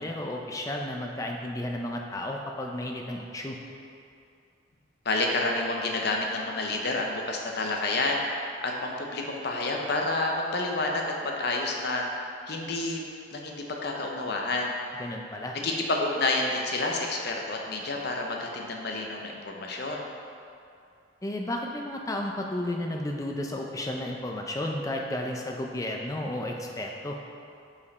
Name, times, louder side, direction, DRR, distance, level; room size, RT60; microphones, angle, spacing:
voice 1, 0.0-3.6 14.9-15.6 21.2-27.2, left 1 dB, 15° left, 1 dB, 0.4 m, -33 dB
voice 2, 5.0-8.2 8.6-12.1 12.5-13.0 13.3-14.7 15.6-20.1, left 2 dB, 50° left, 1 dB, 0.7 m, -29 dB
5.3 x 5.1 x 4.0 m, 2.5 s
head